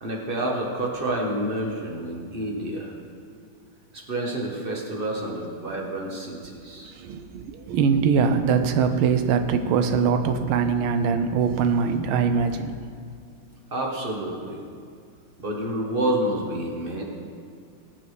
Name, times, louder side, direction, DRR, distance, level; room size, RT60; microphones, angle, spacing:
voice 1, 0.0-2.9 3.9-6.9 13.7-14.6 15.4-17.0, right 1 dB, 30° right, -1 dB, 1.4 m, -29 dB
voice 2, 6.9-12.7, right 6 dB, 85° right, 8 dB, 1.6 m, -22 dB
19.0 x 7.5 x 3.4 m, 2.2 s
omnidirectional pair, 2.3 m